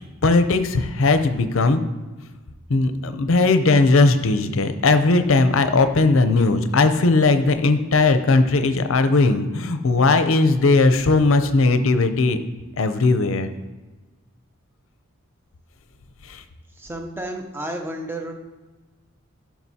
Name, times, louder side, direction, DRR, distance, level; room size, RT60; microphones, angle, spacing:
voice 1, 0.2-1.8 2.7-12.4 12.8-13.5 16.3-16.4, left 3 dB, 65° left, 9 dB, 0.6 m, -18 dB
voice 2, 16.8-18.3, right 1 dB, 10° right, 3 dB, 0.7 m, -31 dB
12.0 x 5.8 x 2.8 m, 1.2 s
head